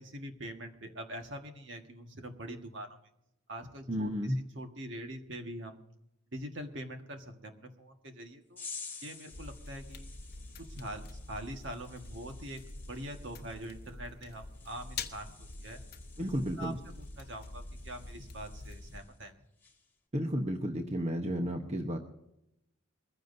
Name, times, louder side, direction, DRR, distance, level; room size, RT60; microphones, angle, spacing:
voice 1, 0.0-3.0 3.5-5.8 6.3-8.6 9.0-10.1 10.6-15.3 15.6-15.8 16.6-19.3, right 1 dB, 55° right, 4 dB, 1.5 m, -44 dB
voice 2, 3.9-4.4 16.2-16.8 20.1-22.0, equal, 30° right, 4 dB, 1.0 m, -32 dB
sound 1, 8.6-19.3 19.6-19.9, left 5 dB, 10° left, 1.6 m, -52 dB
sound 2, 9.3-19.0, left 3 dB, 45° left, 0.9 m, -46 dB
22.0 x 15.0 x 2.7 m, 0.85 s
head